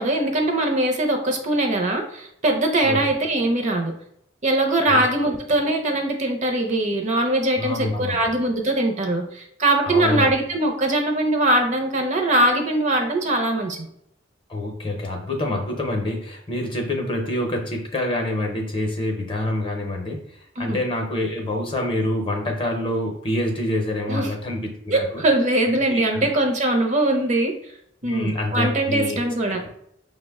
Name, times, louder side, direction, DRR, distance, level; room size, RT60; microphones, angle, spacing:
voice 1, 0.0-3.9 4.4-13.9 20.6-20.8 24.1-24.3 24.9-27.5 28.0-29.6, right 1 dB, 35° right, 4 dB, 0.6 m, -21 dB
voice 2, 7.6-8.2 9.8-10.3 14.5-20.2 20.6-25.2 25.7-26.3 28.0-29.2, left 1 dB, 25° left, 2 dB, 0.7 m, -26 dB
5.6 x 2.1 x 3.4 m, 0.73 s
head